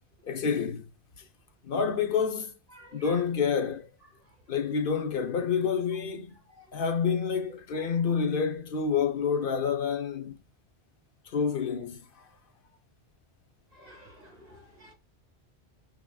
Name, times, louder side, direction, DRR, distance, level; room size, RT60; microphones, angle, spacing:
voice 1, 0.3-0.9 1.6-2.6 2.9-3.9 4.5-6.4 6.7-10.4 11.2-12.3, left 6 dB, 60° left, 0.9 m, -28 dB
voice 2, 2.7-3.2 4.2-4.4 6.5-6.8 7.8-8.2 13.7-14.9, right 1 dB, 35° right, 1.9 m, -53 dB
6.0 x 2.9 x 2.3 m
omnidirectional pair, 1.1 m